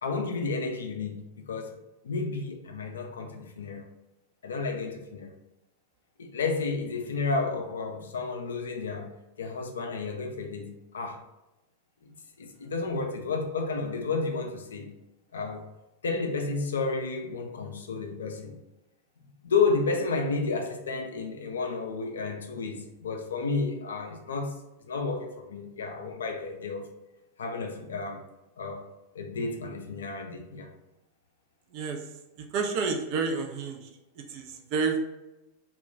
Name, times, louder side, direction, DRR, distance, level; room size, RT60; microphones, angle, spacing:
voice 1, 0.0-1.8 2.0-3.8 4.4-5.3 6.2-9.1 9.4-11.2 12.1-14.9 15.3-15.6 16.0-18.5 19.4-24.6 24.9-26.9 27.4-28.2 28.6-28.9 29.2-30.7, left 4 dB, 65° left, 0.4 m, -31 dB
voice 2, 31.7-32.1 32.4-33.9 34.2-35.0, right 5 dB, 45° right, 0.4 m, -30 dB
2.2 x 2.2 x 3.7 m
figure-of-eight pair, 90°, 0 cm